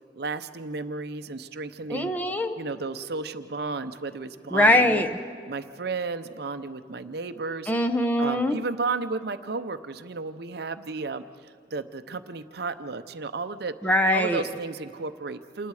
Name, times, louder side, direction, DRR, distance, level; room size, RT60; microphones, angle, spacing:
voice 1, 0.1-2.1 2.6-5.0 5.5-7.7 8.2-11.2 11.7-13.7 14.1-15.7, right 3 dB, 60° right, 10 dB, 0.7 m, -33 dB
voice 2, 1.9-2.5 4.5-5.1 7.7-8.6 13.8-14.4, left 1 dB, 10° left, 5 dB, 0.8 m, -22 dB
27.5 x 19.5 x 4.9 m, 2.1 s
head